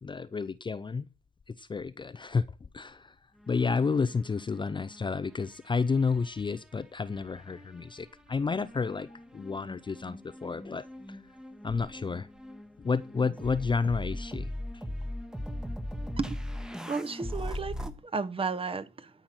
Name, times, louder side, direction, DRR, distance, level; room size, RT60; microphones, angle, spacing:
voice 1, 0.0-1.1 1.6-2.4 2.7-3.1 3.5-10.9 11.6-12.3 12.8-14.5, left 4 dB, 25° left, 0.5 m, -30 dB
sound 1, 3.4-5.0 5.3-6.7 7.4-17.9, left 1 dB, 5° right, 1.2 m, -40 dB
voice 2, 16.9-19.1, right 4 dB, 30° right, 1.1 m, -33 dB
13.0 x 5.8 x 6.2 m
cardioid pair, 90°, 20 cm